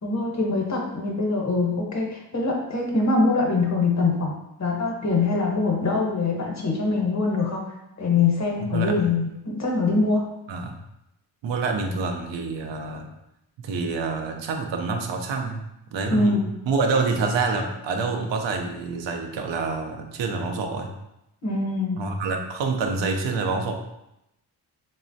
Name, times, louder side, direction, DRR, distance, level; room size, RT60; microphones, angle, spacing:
voice 1, 0.0-7.6 8.0-10.2 16.1-16.4 21.4-22.0, left 3 dB, 40° left, 0 dB, 0.8 m, -23 dB
voice 2, 8.6-9.0 10.5-10.8 11.4-13.1 13.6-15.6 15.9-20.9 22.0-23.7, right 4 dB, 80° right, 4 dB, 0.5 m, -27 dB
3.1 x 2.1 x 2.6 m, 0.86 s
cardioid pair, 55°, 43 cm